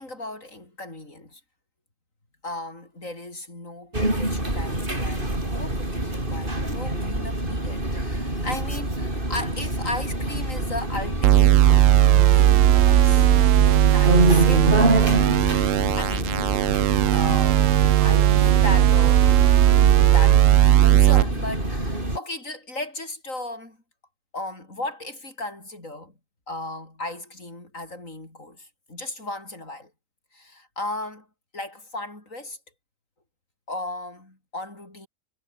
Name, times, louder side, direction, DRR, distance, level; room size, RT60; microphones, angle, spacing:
voice 1, 0.0-1.4 2.4-11.7 12.2-13.3 13.9-14.8 15.4-16.4 17.1-23.8 24.3-26.1 26.5-29.9 30.3-31.3 31.5-32.6 33.7-35.1, left 2 dB, 80° left, 6.9 m, -36 dB
sound 1, 3.9-22.2, right 1 dB, 40° right, 7.3 m, -26 dB
sound 2, 11.2-21.2, right 13 dB, 80° right, 1.0 m, -17 dB
omnidirectional pair, 1.4 m